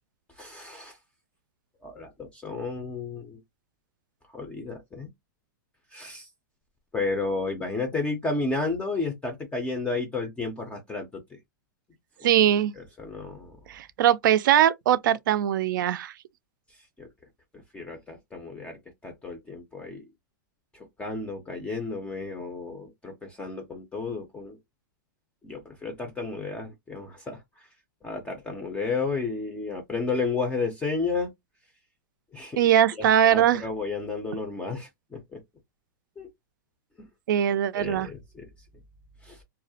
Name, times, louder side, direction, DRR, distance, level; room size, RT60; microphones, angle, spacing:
voice 1, 0.4-0.9 1.8-3.4 4.3-5.1 5.9-6.3 6.9-11.4 12.8-13.6 17.0-17.1 17.7-18.8 19.0-20.0 20.7-24.6 25.4-27.4 28.0-31.3 32.3-32.6 33.2-35.4 36.2-36.3 37.8-38.4 39.2-39.4, left 3 dB, 10° left, 0.4 m, -32 dB
voice 2, 12.2-12.7 13.7-16.1 32.6-33.6 37.3-38.1, right 10 dB, 70° right, 0.4 m, -21 dB
2.3 x 2.1 x 2.7 m
hypercardioid pair, 145°, 11 cm